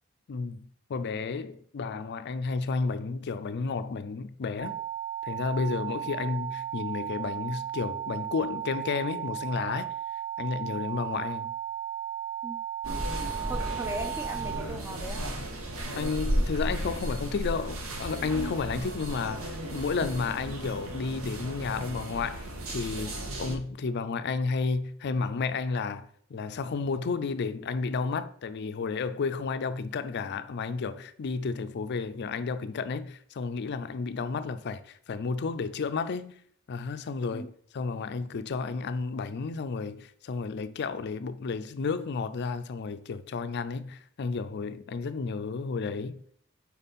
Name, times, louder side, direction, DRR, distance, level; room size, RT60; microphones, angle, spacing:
voice 1, 0.3-4.8 5.2-9.9 10.4-11.5 15.9-36.4 36.7-46.2, left 4 dB, 55° left, 0.4 m, -32 dB
sound 1, 4.6-14.6, right 8 dB, 45° right, 1.1 m, -35 dB
sound 2, 12.8-23.6, right 1 dB, 85° right, 1.0 m, -34 dB
voice 2, 13.5-15.3 37.3-37.5, right 1 dB, 15° right, 0.8 m, -37 dB
5.3 x 4.5 x 4.1 m
head